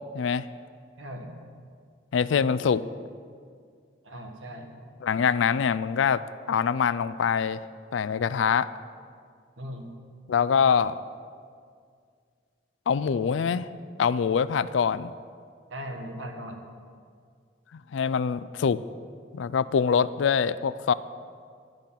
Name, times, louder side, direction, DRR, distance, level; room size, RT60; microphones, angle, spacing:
voice 1, 0.1-0.4 2.1-2.8 5.0-6.2 6.5-7.6 7.9-8.7 10.3-11.0 12.9-13.7 14.0-15.1 17.9-18.8 19.3-20.9, left 6 dB, 80° left, 16 dB, 0.4 m, -24 dB
voice 2, 1.0-1.4 4.0-4.7 9.6-9.9 15.7-16.6, equal, 85° right, 3 dB, 1.5 m, -38 dB
12.0 x 9.2 x 5.7 m, 2.1 s
head